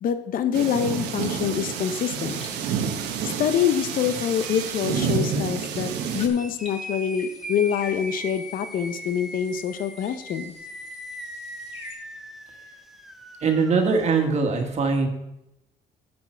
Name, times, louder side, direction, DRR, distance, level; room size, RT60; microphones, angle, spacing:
voice 1, 0.0-2.4 3.2-10.5, left 8 dB, 55° left, 10 dB, 0.7 m, -25 dB
sound 1, 0.5-6.3, right 7 dB, 85° right, 1.3 m, -29 dB
sound 2, 1.0-12.0, left 2 dB, 40° left, 2.6 m, -47 dB
sound 3, 6.3-14.3, equal, ahead, 0.9 m, -39 dB
voice 2, 13.4-15.1, right 4 dB, 40° right, 4 dB, 1.7 m, -21 dB
10.5 x 6.9 x 4.5 m, 0.87 s
cardioid pair, 110°, 17 cm